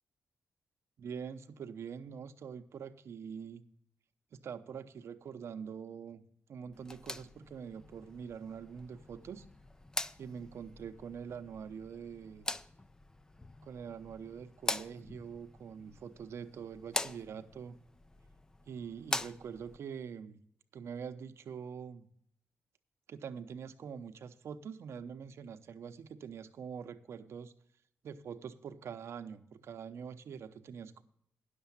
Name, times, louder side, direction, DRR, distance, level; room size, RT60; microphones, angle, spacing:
voice 1, 1.0-3.6 4.3-6.2 6.5-9.5 10.2-12.5 13.6-17.7 18.7-20.4 20.7-22.1 23.1-27.5 28.0-31.0, right 7 dB, 70° right, 9 dB, 0.8 m, -44 dB
sound 1, 6.7-19.8, left 2 dB, 15° left, 0.4 m, -43 dB
10.0 x 6.8 x 7.1 m, 0.69 s
cardioid pair, 110°, 5 cm